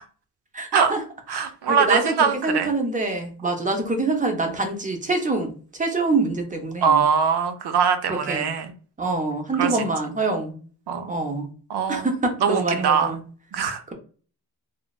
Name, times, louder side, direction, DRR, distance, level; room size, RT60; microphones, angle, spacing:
voice 1, 0.5-1.0 1.3-5.5 5.8-7.0 8.1-8.5 9.0-10.6 11.1-11.5 11.9-13.2, right 3 dB, 20° right, 4 dB, 0.5 m, -25 dB
voice 2, 1.3-2.7 6.8-8.7 9.6-9.7 10.9-11.1 11.7-12.1 12.4-13.1 13.5-13.9, right 6 dB, 80° right, 8 dB, 0.6 m, -22 dB
3.1 x 2.1 x 2.3 m, 0.40 s
wide cardioid pair, 150°, 39 cm